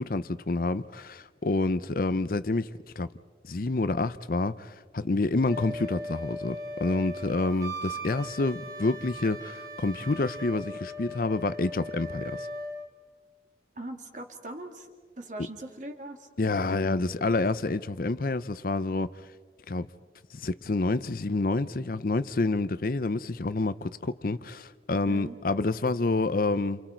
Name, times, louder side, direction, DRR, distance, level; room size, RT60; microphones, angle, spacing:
voice 1, 0.0-3.1 3.4-12.5 16.4-19.2 19.7-19.9 20.3-26.8, left 2 dB, 50° left, 0.6 m, -28 dB
Wind instrument woodwind instrument, 5.4-12.9, equal, 20° right, 2.1 m, -39 dB
voice 2, 13.8-14.9 15.2-16.3 25.0-25.3, right 1 dB, 40° right, 2.3 m, -40 dB
29.0 x 28.5 x 4.5 m
head